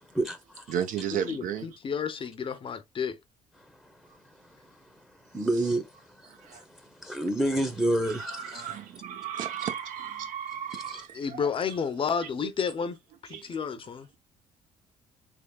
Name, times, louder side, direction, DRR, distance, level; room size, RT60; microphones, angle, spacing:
voice 1, 0.7-1.7 5.6-5.7 6.3-6.6 7.6-7.7 8.0-11.5 12.4-12.5 13.3-13.6, right 9 dB, 70° right, 0.8 m, -34 dB
voice 2, 1.3-3.2 11.1-13.0 13.2-14.1, left 6 dB, 40° left, 0.7 m, -31 dB
voice 3, 5.3-5.8 7.0-8.6 10.9-11.0, right 1 dB, 5° right, 0.8 m, -27 dB
3.4 x 3.4 x 2.3 m
cardioid pair, 95°, 14 cm